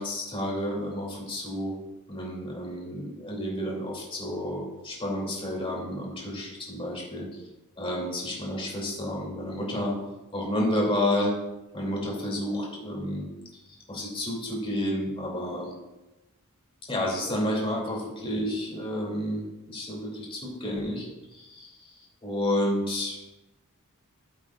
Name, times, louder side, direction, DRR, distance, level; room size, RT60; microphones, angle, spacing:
voice 1, 0.0-1.8 2.1-7.4 7.8-10.0 10.3-11.4 11.7-13.3 13.5-13.6 13.9-15.7 16.9-23.3, left 1 dB, 25° left, -2 dB, 2.9 m, -30 dB
14.0 x 7.5 x 2.5 m, 1.0 s
head